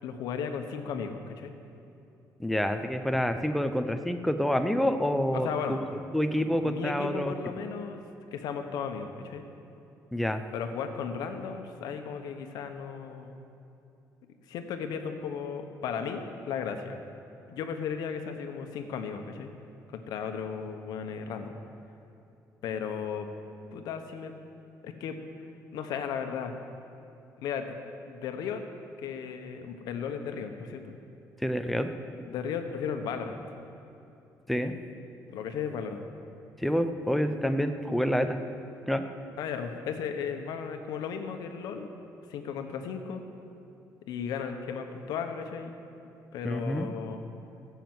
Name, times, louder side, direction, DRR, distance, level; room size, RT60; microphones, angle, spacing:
voice 1, 0.0-1.5 5.3-5.8 6.4-8.0 8.3-9.5 10.5-13.4 14.5-17.0 17.5-19.5 19.9-21.5 22.6-23.3 23.7-24.3 24.8-25.2 25.7-26.5 27.4-27.8 28.0-28.6 29.0-30.9 32.2-33.4 35.3-36.0 39.4-41.9 42.3-43.2 44.1-45.7 46.3-47.3, left 6 dB, 80° left, 6 dB, 1.1 m, -35 dB
voice 2, 2.4-5.5 6.1-7.3 10.1-10.4 31.4-31.9 34.5-34.8 36.6-38.4 38.9-39.0 46.4-46.9, equal, ahead, 7 dB, 0.6 m, -27 dB
15.0 x 7.1 x 7.9 m, 2.8 s
cardioid pair, 155°, 7 cm